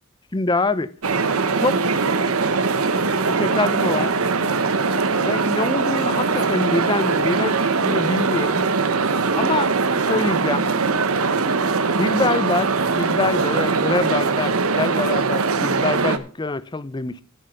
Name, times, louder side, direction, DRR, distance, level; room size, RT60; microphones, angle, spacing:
voice 1, 0.3-0.9 1.6-1.8 3.3-4.1 5.2-8.6 9.3-10.7 12.0-17.2, left 3 dB, 20° left, 0.5 m, -25 dB
sound 1, 1.0-16.2, right 4 dB, 80° right, 1.0 m, -21 dB
9.9 x 9.0 x 5.6 m
head